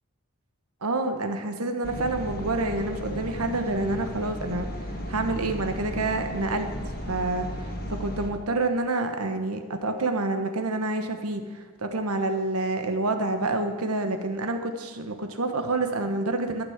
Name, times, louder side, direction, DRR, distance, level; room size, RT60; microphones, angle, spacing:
voice 1, 0.8-4.7 5.1-6.7 7.1-7.5 7.9-16.6, right 2 dB, 90° right, 6 dB, 1.3 m, -28 dB
sound 1, 1.8-8.3, equal, 45° left, 1.7 m, -35 dB
13.5 x 6.2 x 8.0 m, 1.5 s
head